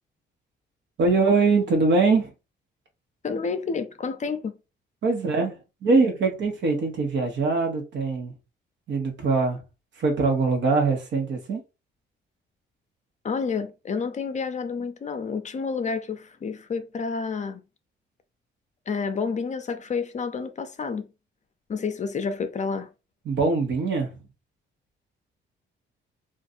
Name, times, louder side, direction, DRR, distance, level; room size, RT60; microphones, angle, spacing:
voice 1, 1.0-2.3 5.0-8.3 8.9-9.6 10.0-11.6 23.2-24.1, right 3 dB, 65° right, 1.2 m, -22 dB
voice 2, 3.2-4.6 13.2-17.6 18.9-21.1 21.7-22.9, left 5 dB, 35° left, 0.5 m, -29 dB
2.5 x 2.5 x 4.1 m
cardioid pair, 90°, 20 cm